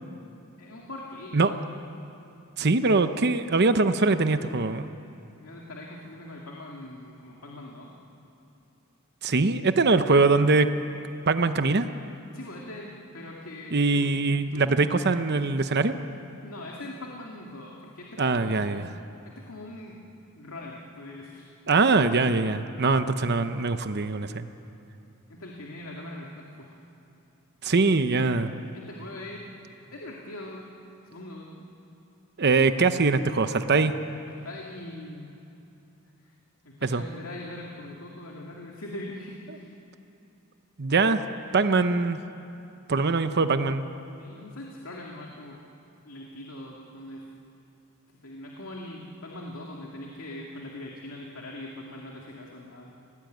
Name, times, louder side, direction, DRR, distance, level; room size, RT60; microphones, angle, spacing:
voice 1, 0.6-1.5 5.4-7.9 12.3-14.1 14.5-14.9 16.4-18.8 19.2-20.0 20.4-21.5 25.3-26.7 28.7-29.4 29.9-30.6 31.0-31.5 34.3-35.3 36.2-36.3 36.6-39.7 44.2-45.6 46.0-47.2 48.2-52.9, left 1 dB, 70° left, -1 dB, 2.5 m, -41 dB
voice 2, 2.6-4.9 9.2-10.7 11.3-11.9 13.7-16.0 18.2-18.9 21.7-24.5 27.6-28.5 32.4-33.9 36.9-37.0 40.8-41.2 41.5-42.2 42.9-43.9, right 3 dB, 50° right, 9 dB, 0.9 m, -22 dB
28.0 x 18.5 x 9.3 m, 2.8 s
head